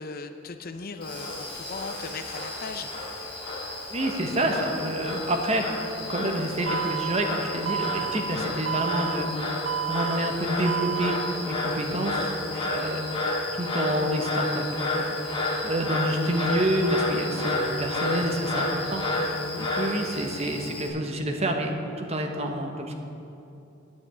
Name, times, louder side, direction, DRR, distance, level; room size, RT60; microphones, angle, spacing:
voice 1, 0.0-2.9 12.4-12.7 19.3-19.7, left 4 dB, 50° left, 8 dB, 0.6 m, -38 dB
Frog, 1.0-20.9, left 2 dB, 30° left, 2.2 m, -31 dB
Boiling, 1.0-8.8, equal, 10° right, 3.0 m, -48 dB
voice 2, 3.9-12.3 12.7-13.1 13.5-22.9, right 1 dB, 35° right, 3 dB, 1.1 m, -28 dB
Alarm, 6.7-7.2 7.7-8.2 8.7-9.2 9.7-10.2 10.7-11.2, right 10 dB, 85° right, 0.6 m, -30 dB
9.5 x 7.9 x 8.2 m, 2.8 s
head